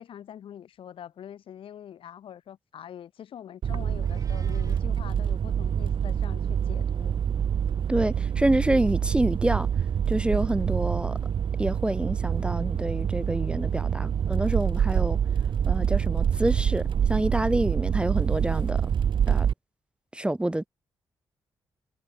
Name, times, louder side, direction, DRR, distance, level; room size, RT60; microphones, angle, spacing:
voice 1, 0.0-7.1, left 9 dB, 75° left, 2.7 m, -44 dB
sound 1, 3.6-19.5, right 8 dB, 60° right, 0.9 m, -26 dB
Meow, 4.0-4.9, right 4 dB, 40° right, 7.9 m, -55 dB
voice 2, 7.9-9.7 10.1-11.2 11.6-15.2 15.7-18.8 19.3-19.5 20.1-20.7, right 1 dB, 10° right, 0.7 m, -27 dB
supercardioid pair, 60°, 9 cm